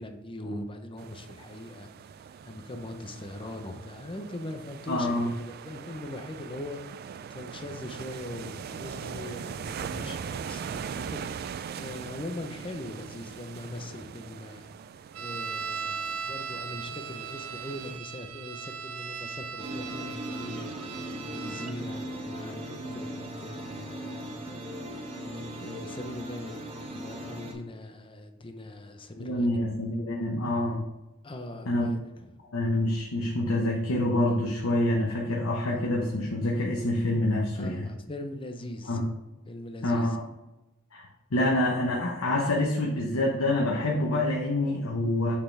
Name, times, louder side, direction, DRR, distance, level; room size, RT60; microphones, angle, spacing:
voice 1, 0.0-1.9 2.4-6.8 7.3-14.7 15.2-20.7 21.3-24.4 25.3-26.6 26.9-29.6 31.2-32.3 37.5-39.0 39.5-40.1, left 1 dB, 25° left, 6 dB, 0.7 m, -41 dB
sound 1, 1.0-18.0, right 7 dB, 45° right, 0.3 m, -41 dB
voice 2, 4.9-5.3 29.2-30.8 31.7-31.9 32.5-37.9 38.8-39.1 39.8-40.2 40.9-45.3, left 1 dB, 75° left, -1 dB, 1.0 m, -27 dB
sound 2, 15.1-21.7, right 6 dB, 90° right, 0.6 m, -38 dB
sound 3, 19.6-27.5, right 1 dB, 30° right, 1.3 m, -38 dB
6.6 x 5.7 x 3.3 m, 1.0 s
head